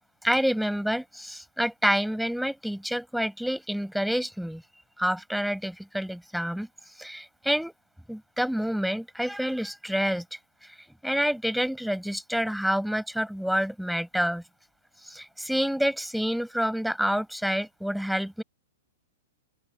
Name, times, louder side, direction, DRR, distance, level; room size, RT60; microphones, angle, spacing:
voice 1, 0.2-4.6 5.0-6.7 7.0-7.7 8.1-10.2 11.0-14.4 15.0-18.4, equal, ahead, 6.2 m, -28 dB
open air
hypercardioid pair, 125°, 0 cm